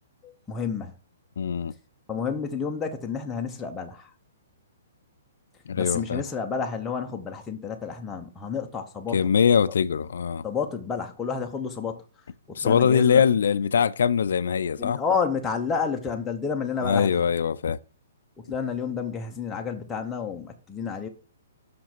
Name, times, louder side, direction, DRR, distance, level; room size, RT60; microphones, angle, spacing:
voice 1, 0.2-0.9 2.1-4.1 5.8-9.2 10.4-12.0 12.5-13.3 14.8-17.2 18.4-21.1, left 6 dB, 10° left, 0.7 m, -30 dB
voice 2, 1.4-1.7 5.7-6.2 9.1-10.4 12.6-15.0 16.8-17.8, left 7 dB, 70° left, 0.4 m, -22 dB
5.9 x 5.0 x 5.9 m
hypercardioid pair, 175°, 0 cm